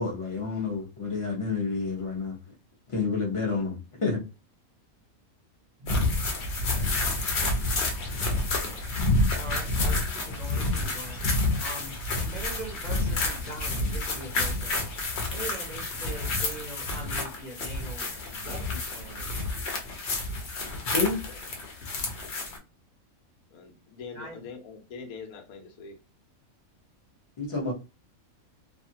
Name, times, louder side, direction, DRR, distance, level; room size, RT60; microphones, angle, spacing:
voice 1, 0.0-2.4 2.9-4.2 20.9-21.2 27.4-27.7, left 4 dB, 30° left, 0.7 m, -29 dB
voice 2, 5.8-6.3 6.7-7.2 8.2-8.9 9.3-19.5 24.1-24.4, right 2 dB, 45° right, 0.6 m, -43 dB
sound 1, 5.9-22.6, left 2 dB, 55° left, 1.0 m, -29 dB
voice 3, 23.5-26.0, left 5 dB, 85° left, 1.2 m, -43 dB
2.7 x 2.4 x 2.7 m
omnidirectional pair, 1.5 m